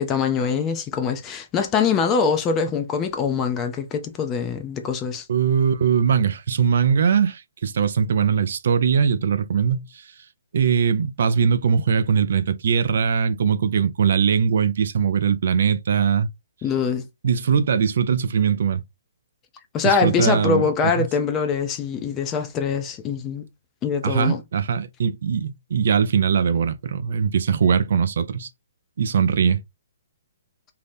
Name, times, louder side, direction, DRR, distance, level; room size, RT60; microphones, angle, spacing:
voice 1, 0.0-5.3 16.6-17.1 19.7-23.5 23.8-24.4, left 6 dB, 20° left, 0.4 m, -23 dB
voice 2, 5.3-9.8 10.5-16.3 17.2-18.8 20.0-20.6 21.0-21.1 24.0-28.5 29.0-29.6, right 7 dB, 60° right, 0.3 m, -21 dB
2.7 x 2.0 x 3.3 m
hypercardioid pair, 160°, 0 cm